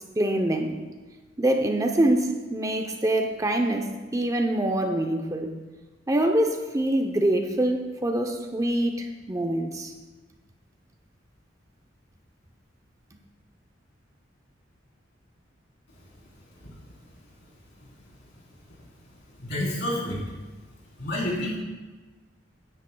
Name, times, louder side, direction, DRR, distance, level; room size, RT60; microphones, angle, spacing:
voice 1, 0.2-0.8 1.4-5.5 6.1-9.9, right 1 dB, 20° right, 4 dB, 0.6 m, -25 dB
voice 2, 19.4-20.2 21.0-21.6, left 1 dB, 60° left, -5 dB, 3.5 m, -28 dB
16.0 x 9.9 x 2.2 m, 1.3 s
head